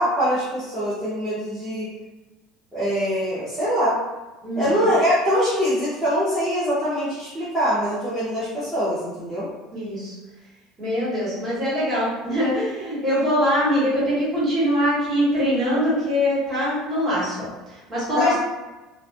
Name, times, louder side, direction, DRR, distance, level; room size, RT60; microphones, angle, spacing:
voice 1, 0.0-1.9 2.7-4.0 4.5-9.5 18.2-18.4, equal, 5° right, -13 dB, 0.8 m, -23 dB
voice 2, 4.4-4.9 9.7-10.1 10.8-17.5 17.9-18.4, equal, 20° right, -9 dB, 1.4 m, -23 dB
2.5 x 2.3 x 2.5 m, 1.1 s
cardioid pair, 140°, 0 cm